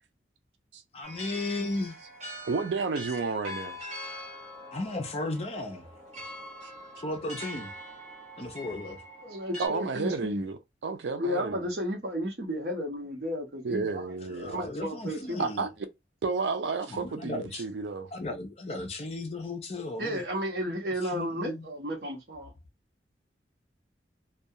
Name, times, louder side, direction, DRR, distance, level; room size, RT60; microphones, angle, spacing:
voice 1, 0.9-1.9 4.7-5.9 7.0-7.7 8.4-9.0 14.3-15.7 16.9-17.6 18.1-20.2 21.0-21.6, left 2 dB, 35° left, 0.5 m, -35 dB
sound 1, 1.0-9.7, equal, 40° right, 0.9 m, -43 dB
voice 2, 2.5-3.8 6.6-6.7 9.6-10.6 10.8-11.7 13.6-14.6 15.4-15.9 16.2-18.1, right 4 dB, 85° right, 0.4 m, -31 dB
voice 3, 9.2-10.4 11.2-14.1 14.5-15.5 20.0-22.5, equal, 65° right, 0.9 m, -33 dB
2.3 x 2.3 x 2.7 m
head